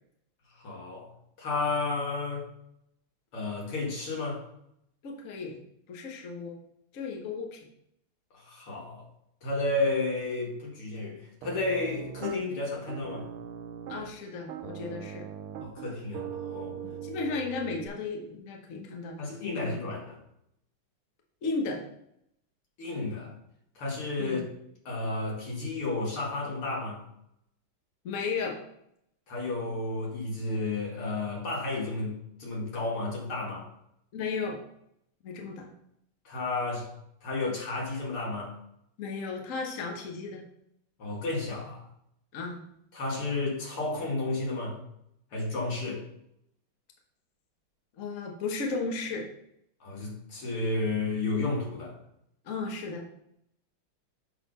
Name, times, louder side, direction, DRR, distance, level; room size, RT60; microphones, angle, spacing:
voice 1, 0.6-1.1 1.4-2.5 3.3-4.4 8.3-9.1 9.4-13.3 15.6-16.8 19.2-20.2 22.8-23.3 23.8-24.4 24.9-27.0 29.3-33.7 36.2-36.9 37.2-38.6 41.0-41.9 42.9-44.8 45.3-46.0 49.8-51.9, left 3 dB, 85° left, -3 dB, 2.9 m, -32 dB
voice 2, 5.0-5.6 5.9-6.6 6.9-7.6 13.9-15.3 16.8-19.1 19.6-19.7 21.4-21.8 24.2-24.4 28.0-28.6 34.1-34.6 35.2-35.7 39.0-40.4 42.3-42.6 48.0-49.3 52.4-53.0, left 4 dB, 45° left, 1 dB, 1.2 m, -34 dB
Piano, 11.4-12.4 12.9-14.1 14.5-17.9, right 9 dB, 80° right, 1.6 m, -40 dB
7.0 x 4.1 x 5.3 m, 0.75 s
omnidirectional pair, 2.3 m